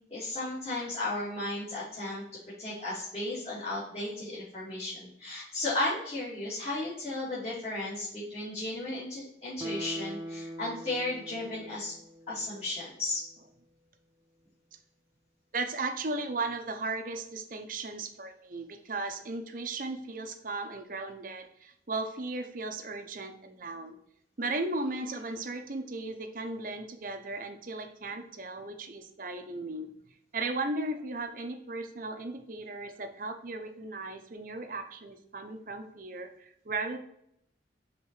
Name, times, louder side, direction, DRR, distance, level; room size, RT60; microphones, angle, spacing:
voice 1, 0.1-2.2 2.6-11.9 12.3-13.2, left 2 dB, 35° left, -11 dB, 2.1 m, -34 dB
Guitar, 9.6-12.9 13.2-13.3, right 1 dB, 15° right, 0.3 m, -42 dB
voice 2, 15.5-24.0 24.4-29.9 30.3-37.0, right 2 dB, 45° right, 6 dB, 0.7 m, -36 dB
5.6 x 3.8 x 4.4 m, 0.73 s
head